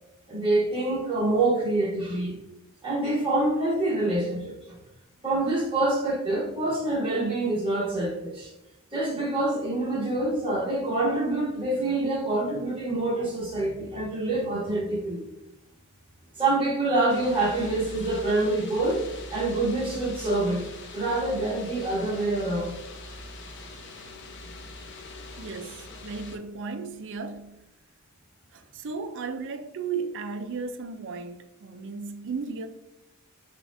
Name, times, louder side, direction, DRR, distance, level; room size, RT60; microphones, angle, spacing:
voice 1, 0.3-2.4 2.8-4.5 5.2-8.5 8.9-15.2 16.4-19.0 19.3-20.6 20.9-22.7, right 2 dB, 25° right, 1.4 m, -26 dB
sound 1, 17.1-26.4, left 2 dB, 55° left, 0.7 m, -42 dB
voice 2, 25.4-27.6 28.5-32.7, right 5 dB, 60° right, 0.4 m, -35 dB
6.5 x 2.5 x 2.5 m
head